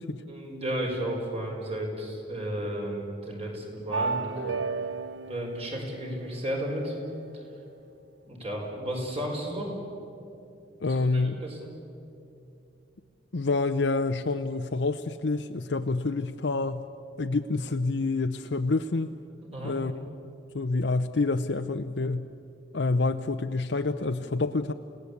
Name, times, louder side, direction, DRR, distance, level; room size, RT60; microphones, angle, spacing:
voice 1, 0.3-4.3 5.3-6.9 8.3-9.8 10.9-11.6 19.5-19.7, right 1 dB, 35° right, 0 dB, 5.0 m, -33 dB
sound 1, 3.9-6.9, right 4 dB, 70° right, 0.7 m, -33 dB
voice 2, 10.8-11.4 13.3-16.8 17.2-19.1 19.6-19.9 20.5-22.3 22.7-24.7, left 3 dB, 70° left, 6 dB, 0.7 m, -27 dB
29.0 x 17.5 x 8.5 m, 2.7 s
head